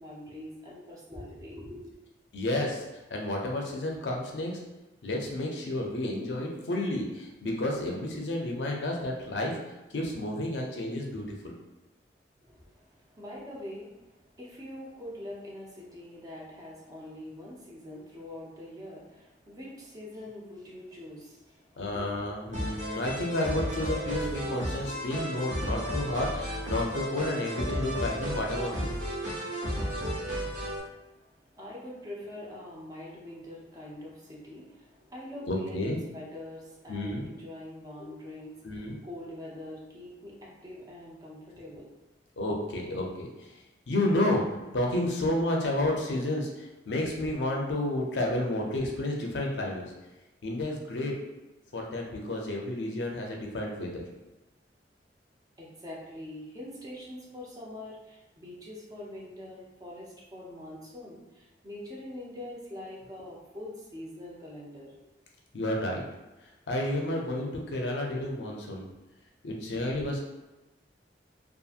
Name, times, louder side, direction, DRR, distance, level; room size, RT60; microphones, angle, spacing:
voice 1, 0.0-1.9 12.4-22.1 30.0-41.9 55.6-64.9, left 1 dB, 20° right, -4 dB, 0.6 m, -44 dB
voice 2, 2.3-2.8 3.1-4.6 5.0-9.6 9.9-11.5 21.8-28.9 35.5-36.0 36.9-37.2 38.6-39.0 42.4-43.3 43.9-44.4 44.7-49.9 50.4-51.1 51.7-54.0 65.5-66.0 66.7-68.9 69.4-70.2, left 1 dB, 80° left, 0 dB, 0.5 m, -31 dB
sound 1, 22.5-30.8, equal, 45° right, 1.1 m, -33 dB
2.7 x 2.5 x 2.4 m, 1.1 s
head